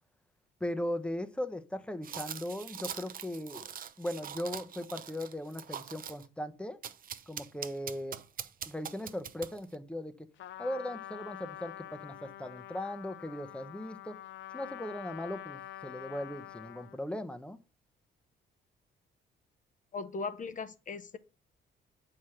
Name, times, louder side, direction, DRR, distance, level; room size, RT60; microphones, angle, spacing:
voice 1, 0.6-3.7 4.0-6.8 7.3-8.2 8.7-10.3 10.6-14.2 14.5-17.6, left 1 dB, 5° left, 0.8 m, -38 dB
sound 1, 2.0-6.3 6.8-9.7, right 8 dB, 45° right, 0.6 m, -43 dB
Trumpet, 10.4-17.0, left 13 dB, 70° left, 0.5 m, -46 dB
voice 2, 19.9-21.2, left 4 dB, 40° left, 0.8 m, -38 dB
7.3 x 4.9 x 5.7 m
cardioid pair, 90°, 20 cm